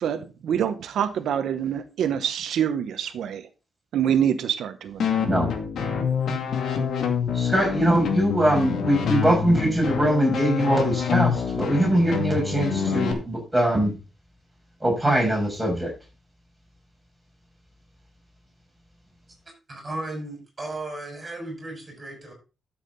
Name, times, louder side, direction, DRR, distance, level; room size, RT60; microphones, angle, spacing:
voice 1, 0.0-3.5 3.9-5.3, right 9 dB, 85° right, 9 dB, 0.9 m, -26 dB
sound 1, 5.0-13.1, left 6 dB, 70° left, 2.3 m, -26 dB
voice 2, 7.3-13.9 14.8-15.9, right 1 dB, 5° right, -2 dB, 6.4 m, -22 dB
voice 3, 19.7-22.3, right 2 dB, 20° right, 2 dB, 6.2 m, -35 dB
12.0 x 7.4 x 4.0 m, 0.32 s
wide cardioid pair, 145°, 0 cm